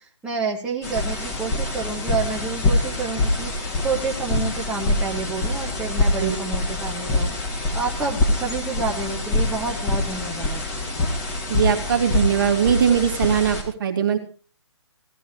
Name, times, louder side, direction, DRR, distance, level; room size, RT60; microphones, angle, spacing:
voice 1, 0.2-3.5 3.8-7.3 7.7-10.6, right 4 dB, 5° right, -4 dB, 1.8 m, -29 dB
sound 1, 0.8-13.6, left 2 dB, 15° left, 3.3 m, -25 dB
voice 2, 11.5-14.2, right 8 dB, 45° right, 3 dB, 2.6 m, -20 dB
18.0 x 12.0 x 4.7 m, 0.38 s
figure-of-eight pair, 145°, 15 cm